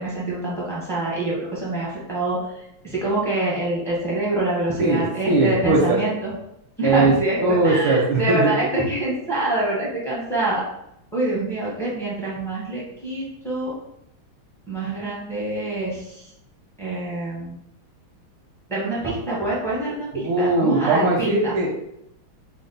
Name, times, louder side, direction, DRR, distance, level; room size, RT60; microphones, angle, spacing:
voice 1, 0.0-2.4 2.8-6.3 6.8-10.6 11.1-13.7 14.7-16.2 16.8-17.6 18.7-21.5, right 2 dB, 5° left, -7 dB, 0.4 m, -25 dB
voice 2, 4.8-6.0 6.8-7.1 7.4-8.5 19.0-19.1 20.1-21.8, right 2 dB, 85° right, -2 dB, 1.4 m, -20 dB
4.0 x 2.0 x 3.9 m, 0.79 s
omnidirectional pair, 2.2 m